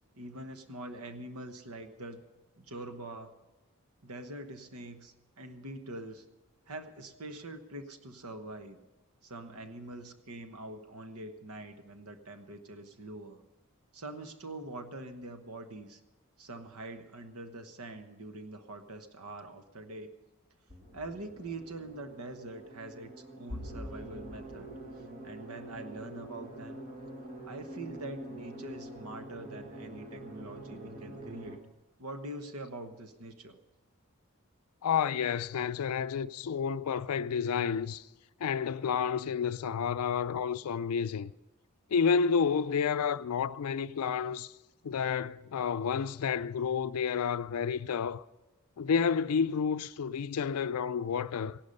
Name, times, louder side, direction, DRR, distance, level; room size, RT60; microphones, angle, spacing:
voice 1, 0.1-2.2 2.6-3.3 4.0-6.2 6.7-8.8 9.2-13.4 13.9-16.0 16.4-20.1 20.9-24.7 25.2-26.8 27.4-31.6 32.0-33.6, right 2 dB, 85° right, 1.1 m, -44 dB
sound 1, 20.7-31.6, right 1 dB, 35° right, 1.8 m, -45 dB
voice 2, 34.8-38.1 38.4-41.3 41.9-44.5 44.8-48.2 48.8-51.6, left 6 dB, 90° left, 0.4 m, -30 dB
16.5 x 11.5 x 5.5 m
head